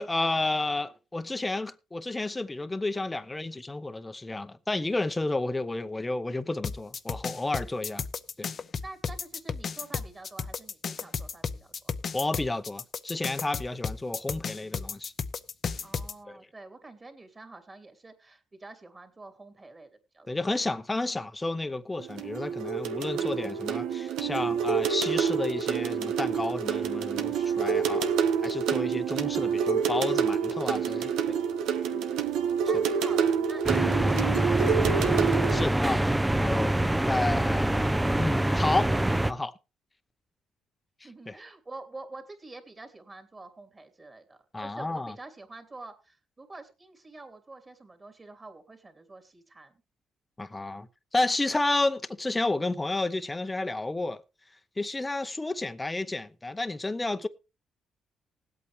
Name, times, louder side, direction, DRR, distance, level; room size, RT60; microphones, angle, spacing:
voice 1, 0.0-8.0 8.4-8.5 12.1-15.1 16.3-16.4 20.3-28.1 28.4-31.1 35.5-36.7 37.1-38.9 39.3-39.6 41.0-41.4 44.5-45.1 50.4-50.9 51.1-54.2 54.8-57.3, left 2 dB, 15° left, 0.8 m, -31 dB
sound 1, 6.6-16.1, left 6 dB, 45° left, 0.7 m, -33 dB
voice 2, 8.8-11.7 15.8-19.9 20.1-20.3 27.4-27.8 31.8-32.2 32.6-35.1 41.0-49.8, right 2 dB, 25° right, 2.9 m, -47 dB
sound 2, 22.0-35.6, right 7 dB, 90° right, 1.0 m, -27 dB
sound 3, 33.6-39.3, right 1 dB, 10° right, 0.6 m, -25 dB
19.5 x 8.4 x 3.2 m
cardioid pair, 90°, 0 cm